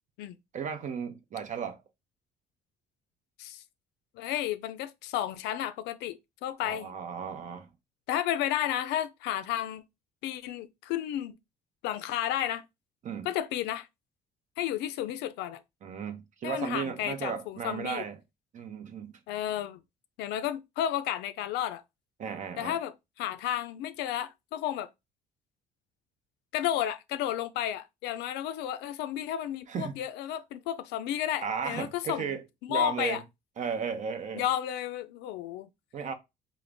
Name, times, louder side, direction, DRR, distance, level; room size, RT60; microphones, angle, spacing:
voice 1, 0.5-1.8 6.6-7.7 13.0-13.3 15.8-18.2 18.5-19.1 22.2-22.8 29.7-29.9 31.4-32.4 32.7-33.2 33.6-34.4 35.9-36.1, right 6 dB, 50° right, 0.7 m, -35 dB
voice 2, 4.2-6.9 8.1-9.8 10.2-11.4 11.8-12.6 13.2-13.9 14.6-15.6 16.4-18.0 19.3-19.8 20.2-21.8 22.6-24.9 26.5-32.4 32.7-33.2 34.3-35.7, left 11 dB, 90° left, 0.4 m, -32 dB
3.8 x 2.0 x 3.4 m
cardioid pair, 110°, 17 cm